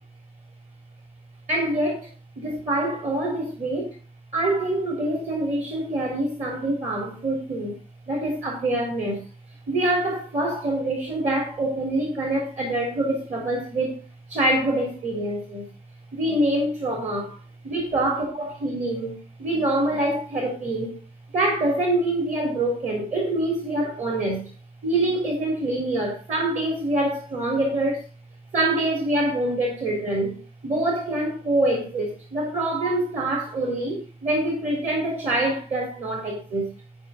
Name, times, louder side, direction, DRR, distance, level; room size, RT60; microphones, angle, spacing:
voice 1, 1.5-4.0 4.3-7.8 8.1-9.2 9.7-14.0 14.3-15.7 16.1-17.4 17.6-21.0 21.3-24.5 24.8-28.0 28.5-36.7, right 1 dB, 45° right, 4.1 m, -25 dB
9.8 x 9.6 x 3.9 m
wide cardioid pair, 135°, 16 cm